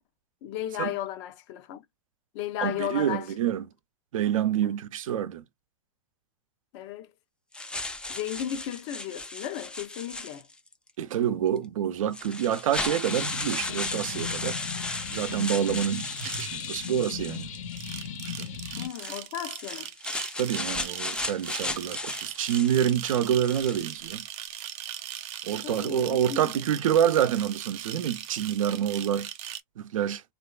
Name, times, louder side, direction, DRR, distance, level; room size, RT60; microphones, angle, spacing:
voice 1, 0.4-1.8 2.3-3.3 4.6-4.7 6.7-7.1 8.1-10.5 18.8-19.9 25.6-26.6, left 11 dB, 55° left, 0.7 m, -35 dB
voice 2, 2.6-3.7 4.1-5.4 11.0-14.6 15.1-17.5 18.2-18.5 20.4-24.2 25.4-29.3 29.8-30.2, right 9 dB, 85° right, 0.6 m, -27 dB
sound 1, 7.5-10.7 11.6-11.7 12.1-17.9 18.8-24.0, left 2 dB, 5° left, 0.4 m, -35 dB
sound 2, 13.1-18.9, left 7 dB, 80° left, 1.1 m, -37 dB
sound 3, 16.0-16.8 17.7-29.6, right 12 dB, 40° right, 0.6 m, -40 dB
3.1 x 2.5 x 2.3 m
supercardioid pair, 130°, 17 cm